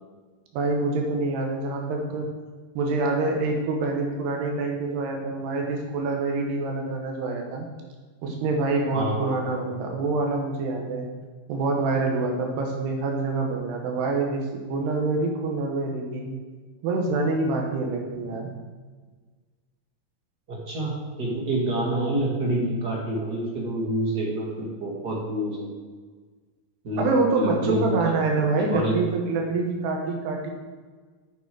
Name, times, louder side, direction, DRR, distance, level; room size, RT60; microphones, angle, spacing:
voice 1, 0.5-2.3 2.8-7.7 8.2-11.1 11.5-14.4 14.7-16.3 16.8-18.5 27.0-30.5, right 3 dB, 85° right, 1 dB, 3.2 m, -26 dB
voice 2, 8.9-9.5 20.5-25.7 26.8-27.0 27.3-28.2 28.7-28.9, right 1 dB, 40° right, -4 dB, 1.6 m, -28 dB
8.1 x 6.9 x 4.7 m, 1.4 s
omnidirectional pair, 4.6 m